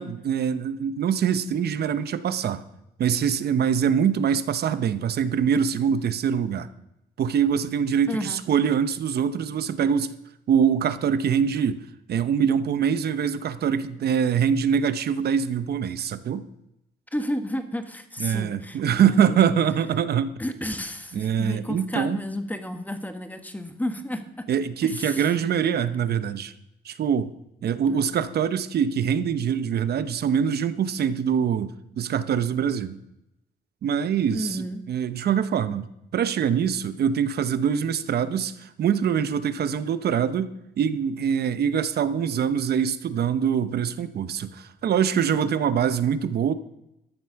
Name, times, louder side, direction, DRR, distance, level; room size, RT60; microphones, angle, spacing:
voice 1, 0.0-2.6 3.0-6.7 7.2-10.1 10.5-11.8 12.1-16.5 18.2-20.3 21.1-22.2 24.5-26.5 26.8-27.3 27.6-33.0 33.8-35.9 36.1-40.5 40.8-46.5, right 8 dB, 70° right, 12 dB, 0.9 m, -24 dB
voice 2, 8.1-8.4 17.1-19.4 20.4-24.5 24.8-25.3 27.8-28.4 34.3-34.9, left 1 dB, 10° left, 8 dB, 1.4 m, -32 dB
13.5 x 7.7 x 5.8 m, 0.86 s
cardioid pair, 90°, 17 cm